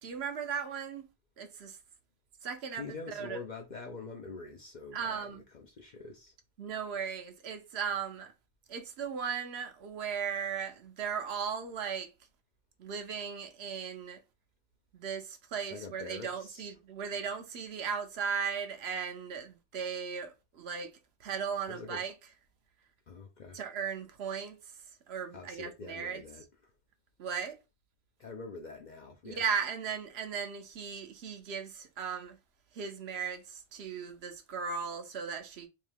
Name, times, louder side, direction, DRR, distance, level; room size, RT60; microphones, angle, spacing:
voice 1, 0.0-1.1 1.4-1.8 2.4-2.8 3.1-3.4 4.9-5.4 6.6-8.3 8.7-12.1 12.8-14.2 14.9-20.9 21.2-22.1 23.5-24.6 25.1-26.2 27.2-27.6 29.2-32.4 32.7-35.7, right 6 dB, 65° right, 0.9 m, -37 dB
voice 2, 2.7-6.3 15.7-16.7 21.7-22.0 23.1-23.6 25.3-26.5 28.2-29.4, left 4 dB, 55° left, 0.5 m, -45 dB
2.9 x 2.7 x 3.3 m
omnidirectional pair, 1.2 m